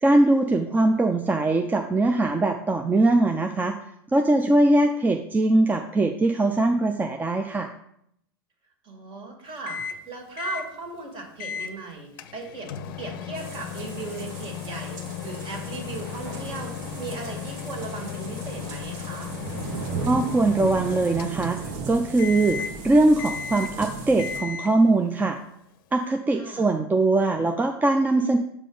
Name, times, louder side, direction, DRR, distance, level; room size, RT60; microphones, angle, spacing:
voice 1, 0.0-3.7 4.1-7.7 20.0-22.6 22.8-25.4 25.9-28.4, right 2 dB, 15° right, 5 dB, 0.5 m, -21 dB
voice 2, 8.8-12.7 13.0-19.3 26.3-26.7, right 3 dB, 45° right, 2 dB, 2.1 m, -37 dB
Microwave oven, 9.7-10.1 10.4-10.7 11.4-11.8 12.2-21.8 22.2-22.8 23.2-23.8 24.2-24.8, left 8 dB, 65° left, 0.6 m, -35 dB
sound 1, 13.3-24.4, right 4 dB, 60° right, 1.2 m, -37 dB
7.4 x 5.0 x 3.9 m, 0.74 s
hypercardioid pair, 90°, 12 cm